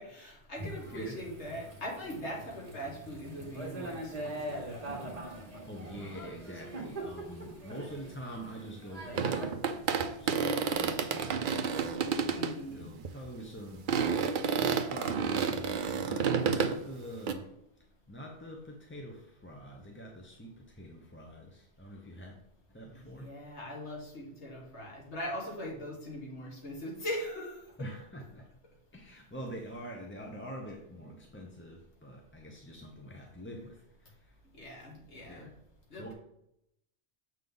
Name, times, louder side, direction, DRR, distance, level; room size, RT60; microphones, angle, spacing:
voice 1, 0.0-5.1 12.3-12.9 22.9-27.6 34.5-35.5 35.9-36.1, equal, 75° left, -2 dB, 2.2 m, -41 dB
Thunder / Rain, 0.5-9.5, right 1 dB, 35° right, 1.6 m, -42 dB
voice 2, 5.7-11.6 12.1-17.5 18.1-22.3 22.7-23.3 27.8-28.5 28.9-34.4 35.3-35.5 35.9-36.1, equal, 15° left, 1 dB, 0.6 m, -45 dB
sound 1, 9.1-12.5 13.0-13.3 13.9-16.8 17.3-17.4, right 6 dB, 55° right, 0.7 m, -30 dB
7.2 x 5.5 x 3.9 m, 0.80 s
omnidirectional pair, 1.2 m